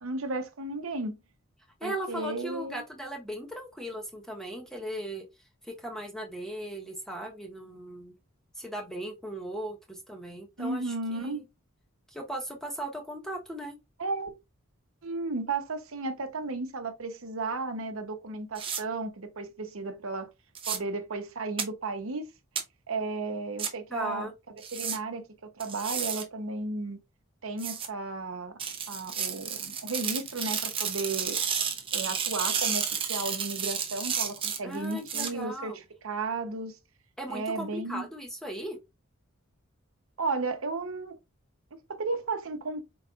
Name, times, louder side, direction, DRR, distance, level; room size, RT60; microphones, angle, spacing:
voice 1, 0.0-1.2 1.8-2.8 10.6-11.4 14.0-14.3 15.0-20.3 20.7-22.3 22.9-24.3 24.7-27.0 27.4-28.6 28.9-31.4 31.9-36.8 37.3-38.1 40.2-41.1 41.9-42.8, right 3 dB, 75° right, 0.9 m, -34 dB
voice 2, 1.8-5.2 5.6-8.1 8.6-11.4 12.1-13.7 23.9-24.3 34.6-35.8 37.2-38.8, right 1 dB, ahead, 1.0 m, -37 dB
sound 1, 18.6-18.8 20.5-20.8 21.6-21.7 22.6-22.7 23.6-23.7 24.6-25.0 25.6-26.2 27.6-27.9 28.6-35.3, right 7 dB, 25° right, 0.7 m, -31 dB
5.0 x 3.9 x 2.4 m
head